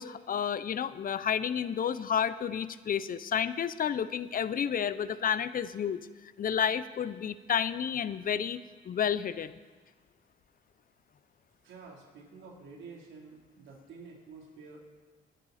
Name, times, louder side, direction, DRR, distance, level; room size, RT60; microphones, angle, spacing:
voice 1, 0.0-6.0 6.4-9.6, left 8 dB, 45° left, 15 dB, 0.7 m, -31 dB
voice 2, 11.6-14.8, right 4 dB, 75° right, -2 dB, 3.6 m, -49 dB
23.0 x 10.5 x 4.2 m, 1.4 s
cardioid pair, 90°, 20 cm